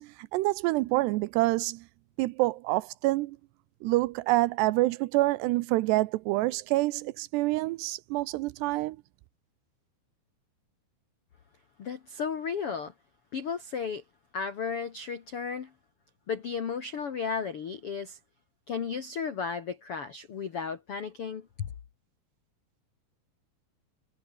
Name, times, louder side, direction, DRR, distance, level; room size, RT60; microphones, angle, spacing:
voice 1, 0.0-1.8 2.2-3.4 3.8-9.0, right 19 dB, 80° right, 2.7 m, -27 dB
voice 2, 11.8-12.9 13.3-14.0 14.3-15.7 16.3-18.2 18.7-21.7, left 6 dB, 65° left, 1.4 m, -34 dB
omnidirectional pair, 5.1 m